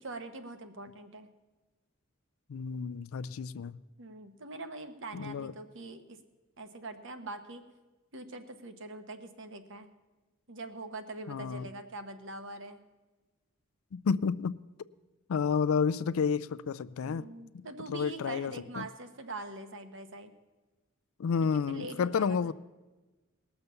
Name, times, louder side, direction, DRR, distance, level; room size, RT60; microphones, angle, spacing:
voice 1, 0.0-1.3 4.0-6.2 6.6-7.6 8.1-9.9 10.5-12.8 17.0-20.3 21.7-22.5, right 2 dB, 60° right, 1.1 m, -43 dB
voice 2, 2.5-3.8 5.1-5.5 11.3-11.7 13.9-14.6 15.3-17.3 17.5-17.6 17.9-18.9 21.2-22.5, left 6 dB, 75° left, 0.4 m, -30 dB
19.0 x 6.8 x 6.9 m
head